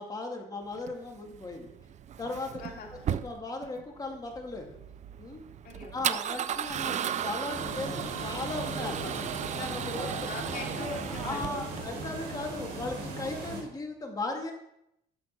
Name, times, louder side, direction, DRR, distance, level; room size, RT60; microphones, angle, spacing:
voice 1, 0.0-1.8 2.2-2.5 3.1-4.8 5.2-5.4 5.9-9.3 9.5-10.3 11.1-14.5, left 2 dB, 20° left, 1 dB, 2.6 m, -37 dB
Male speech man speaking / Car / Engine starting, 0.7-11.8, right 9 dB, 45° right, 0.5 m, -36 dB
voice 2, 2.6-3.1 5.6-6.0 6.4-6.6 10.0-11.6, left 4 dB, 55° left, -1 dB, 2.9 m, -42 dB
sound 1, 7.5-13.6, right 3 dB, 85° right, 4.1 m, -37 dB
10.5 x 7.6 x 6.0 m, 0.79 s
cardioid pair, 110°, 17 cm